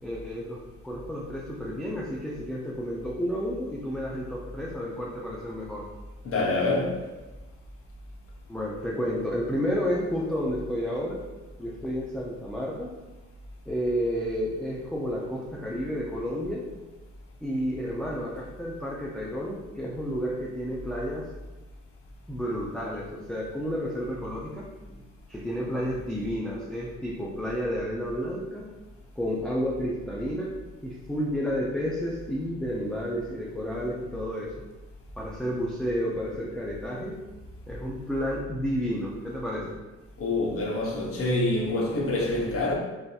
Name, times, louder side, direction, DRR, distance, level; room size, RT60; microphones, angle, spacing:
voice 1, 0.0-5.9 8.5-11.2 11.6-12.9 13.7-16.6 17.4-21.3 22.3-25.0 25.3-28.7 29.2-30.5 30.8-34.5 35.2-37.2 37.7-39.8, equal, ahead, 0.3 m, -31 dB
voice 2, 6.2-7.0 40.2-42.7, left 2 dB, 50° left, 0.8 m, -26 dB
3.4 x 2.5 x 2.3 m
cardioid pair, 90°, 30 cm